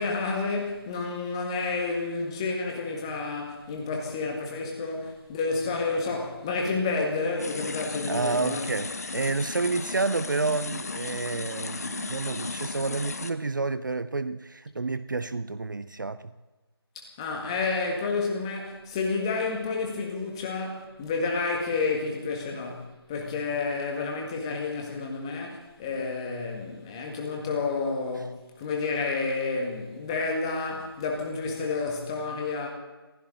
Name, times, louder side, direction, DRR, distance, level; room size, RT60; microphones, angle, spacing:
voice 1, 0.0-8.6 16.9-32.7, left 4 dB, 10° left, 1 dB, 1.8 m, -30 dB
sound 1, 7.4-13.3, left 3 dB, 40° left, 0.9 m, -35 dB
voice 2, 8.1-16.3, right 3 dB, 50° right, 14 dB, 0.6 m, -29 dB
22.5 x 15.5 x 3.9 m, 1.2 s
figure-of-eight pair, 165°, 13 cm